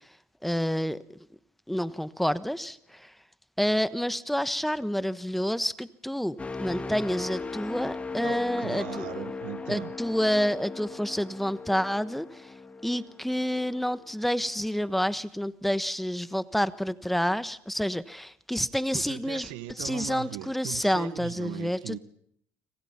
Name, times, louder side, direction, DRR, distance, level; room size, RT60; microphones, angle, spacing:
voice 1, 0.4-1.0 1.7-3.1 3.6-9.3 9.7-12.5 12.8-19.5 19.8-22.0, equal, ahead, 1.2 m, -29 dB
sound 1, 6.4-14.2 14.7-14.9, left 4 dB, 20° left, 2.5 m, -38 dB
voice 2, 8.2-10.0 18.9-22.0, right 16 dB, 85° right, 1.2 m, -39 dB
29.5 x 25.5 x 5.8 m
supercardioid pair, 90°, 6 cm